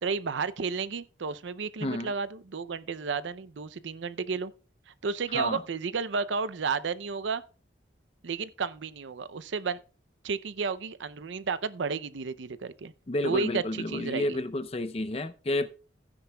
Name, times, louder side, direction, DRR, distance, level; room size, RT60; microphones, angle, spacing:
voice 1, 0.0-4.5 5.0-7.4 8.2-9.8 10.2-12.9 13.2-14.4, right 5 dB, 75° right, 0.5 m, -32 dB
voice 2, 1.8-2.1 5.3-5.6 13.1-15.7, left 1 dB, 30° left, 0.5 m, -30 dB
15.0 x 9.9 x 2.2 m
head